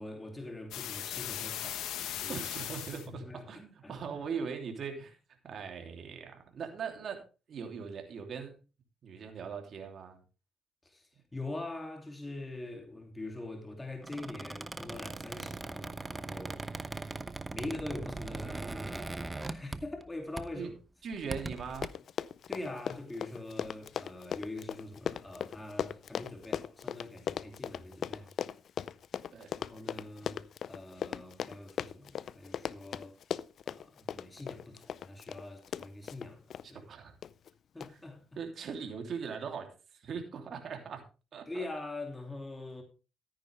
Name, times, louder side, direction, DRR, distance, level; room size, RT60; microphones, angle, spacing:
voice 1, 0.0-2.5 3.1-3.5 3.8-3.9 10.8-16.6 17.5-20.7 22.5-28.3 29.6-33.2 33.6-36.8 37.7-38.2 41.5-42.8, left 2 dB, 15° left, 2.7 m, -43 dB
sound 1, 0.7-3.1, left 11 dB, 90° left, 1.3 m, -38 dB
voice 2, 2.3-5.2 5.4-8.5 9.0-10.2 20.5-20.7 21.0-21.9 29.3-29.6 36.7-37.2 37.9-38.0 38.4-41.0 41.3-41.6, right 6 dB, 60° right, 3.0 m, -40 dB
Squeak, 14.0-20.1 20.4-20.6 21.1-21.9, right 3 dB, 20° right, 0.8 m, -40 dB
Run, 21.4-21.5 21.7-36.7 37.2-37.5 37.8-37.9, left 8 dB, 65° left, 0.5 m, -38 dB
13.5 x 9.8 x 3.4 m
cardioid pair, 90°, 0 cm